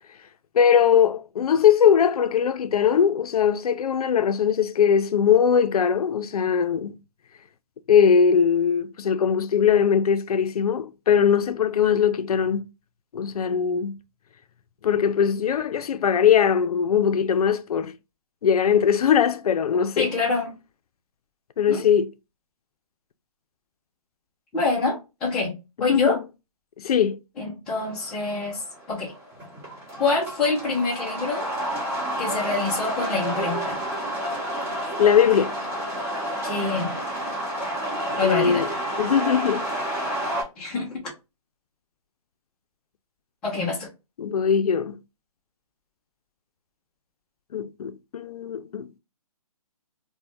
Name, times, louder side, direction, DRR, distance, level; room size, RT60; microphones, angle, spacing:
voice 1, 0.5-6.9 7.9-12.6 13.1-13.9 14.8-17.9 18.4-20.1 21.6-22.1 25.9-26.2 26.8-27.2 35.0-35.5 38.2-38.7 39.0-39.7 44.2-45.0 47.5-49.0, left 7 dB, 80° left, 0.4 m, -20 dB
voice 2, 20.0-20.5 21.7-21.9 24.5-25.5 25.8-26.2 27.4-29.1 30.0-31.5 32.2-33.8 36.4-37.0 38.2-38.7 40.6-41.1 43.4-43.9, left 3 dB, 5° left, 0.4 m, -26 dB
sound 1, 27.7-40.4, right 1 dB, 15° right, 1.1 m, -30 dB
3.1 x 2.1 x 2.5 m
hypercardioid pair, 165°, 19 cm